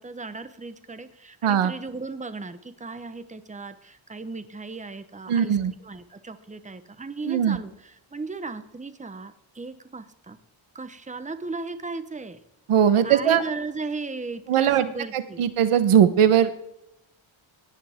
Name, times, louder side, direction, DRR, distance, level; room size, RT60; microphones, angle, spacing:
voice 1, 0.0-10.4 10.7-12.4 13.0-15.4, right 3 dB, 15° right, 11 dB, 1.1 m, -36 dB
voice 2, 5.3-5.7 7.3-7.6 12.7-13.4 14.5-14.9 15.1-16.6, right 9 dB, 85° right, 12 dB, 1.3 m, -20 dB
18.0 x 10.5 x 3.7 m, 0.79 s
cardioid pair, 100°, 49 cm